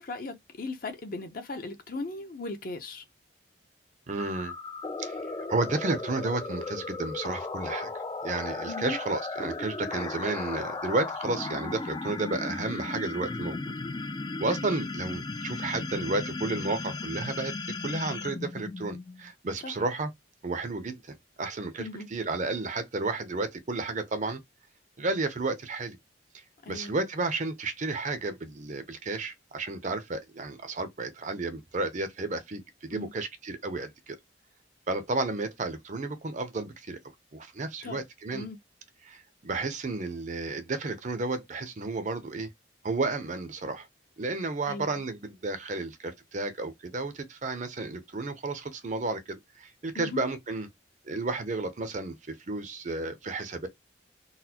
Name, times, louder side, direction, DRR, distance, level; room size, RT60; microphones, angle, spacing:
voice 1, 0.0-3.0 8.7-9.0 19.6-19.7 21.8-22.1 26.6-26.9 32.9-33.1 37.8-38.0 38.3-38.6 44.6-45.0 49.9-50.2, left 3 dB, 50° left, 0.7 m, -37 dB
voice 2, 4.1-4.5 5.0-7.9 8.2-13.6 14.4-17.5 17.8-20.1 20.4-24.4 25.0-26.0 26.7-34.2 34.9-37.0 37.3-38.5 39.0-42.5 42.8-43.9 44.2-50.7 51.0-53.7, right 3 dB, 40° right, 0.6 m, -32 dB
sound 1, 4.2-19.3, left 3 dB, 25° left, 0.3 m, -36 dB
4.0 x 2.1 x 2.8 m
head